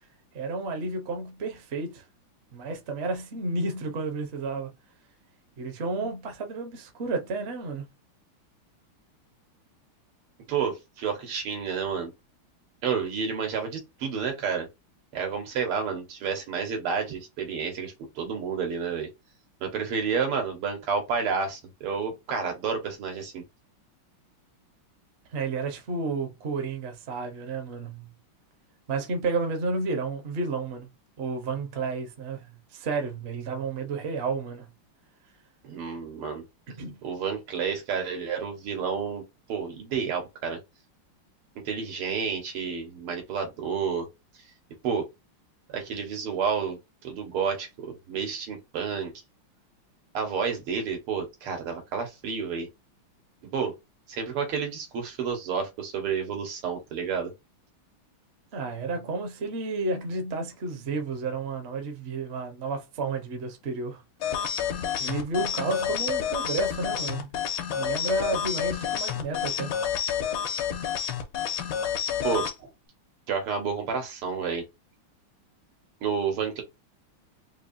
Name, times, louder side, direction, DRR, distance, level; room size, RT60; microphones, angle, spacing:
voice 1, 0.3-2.0 2.5-4.7 5.6-7.9 25.3-28.1 28.9-30.9 31.2-34.7 36.7-37.0 58.5-64.0 65.0-67.3 67.7-69.7, right 3 dB, 45° right, 0.8 m, -31 dB
voice 2, 10.5-12.1 12.8-14.7 15.1-19.1 19.6-23.4 35.6-36.4 37.0-39.2 39.5-40.6 41.7-44.1 44.8-45.1 45.7-49.1 50.1-52.7 53.5-53.8 54.1-57.3 72.2-72.7 73.3-74.6 76.0-76.6, right 6 dB, 85° right, 2.2 m, -30 dB
sound 1, 64.2-72.5, left 8 dB, 70° left, 1.5 m, -29 dB
4.6 x 2.7 x 2.6 m
omnidirectional pair, 2.4 m